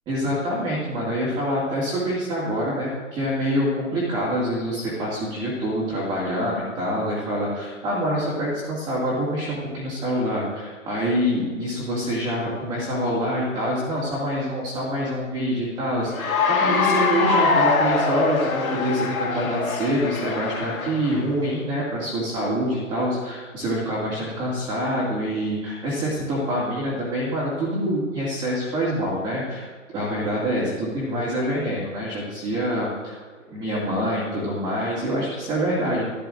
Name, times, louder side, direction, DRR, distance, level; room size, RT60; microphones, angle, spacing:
voice 1, 0.1-33.2 33.5-36.1, equal, 10° right, -6 dB, 2.2 m, -26 dB
Cheering / Applause, 16.1-21.3, left 4 dB, 90° left, 2.3 m, -23 dB
15.0 x 12.5 x 2.6 m, 1.5 s
hypercardioid pair, 155°, 41 cm